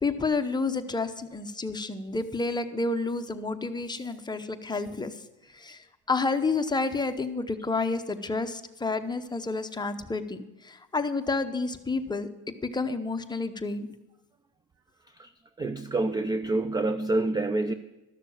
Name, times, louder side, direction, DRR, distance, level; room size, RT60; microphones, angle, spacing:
voice 1, 0.0-5.2 5.5-13.9, left 3 dB, 10° left, 7 dB, 0.8 m, -30 dB
voice 2, 15.6-17.7, right 2 dB, 10° right, 12 dB, 0.4 m, -27 dB
13.0 x 6.7 x 7.1 m, 1.0 s
supercardioid pair, 95°, 35 cm